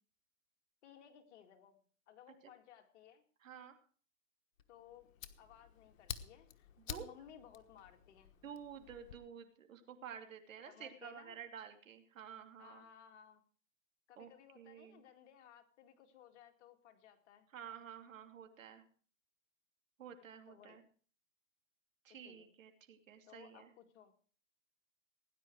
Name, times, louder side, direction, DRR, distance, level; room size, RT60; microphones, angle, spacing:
voice 1, 0.8-1.8 2.1-3.2 4.7-8.4 10.7-11.4 12.6-13.4 14.1-17.5 20.5-20.8 22.2-22.5 23.3-24.1, left 9 dB, 60° left, 6 dB, 2.4 m, -60 dB
voice 2, 3.4-3.8 6.8-7.1 8.4-12.8 14.2-15.0 17.5-18.8 20.0-20.8 22.0-23.7, right 8 dB, 80° right, 6 dB, 2.9 m, -51 dB
Fire, 4.6-9.2, left 8 dB, 80° left, 1.3 m, -50 dB
17.5 x 10.0 x 4.8 m, 0.42 s
hypercardioid pair, 135°, 39 cm